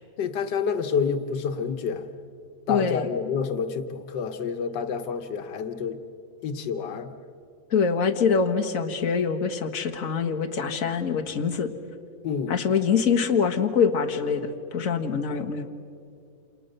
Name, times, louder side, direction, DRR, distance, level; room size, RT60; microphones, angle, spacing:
voice 1, 0.2-2.1 2.7-6.0 6.4-7.1 12.2-12.5 15.3-15.4, left 6 dB, 90° left, 8 dB, 1.7 m, -28 dB
voice 2, 2.7-3.1 7.7-11.7 12.5-15.7, left 6 dB, 50° left, 3 dB, 1.8 m, -24 dB
28.5 x 28.0 x 6.7 m, 2.5 s
omnidirectional pair, 1.8 m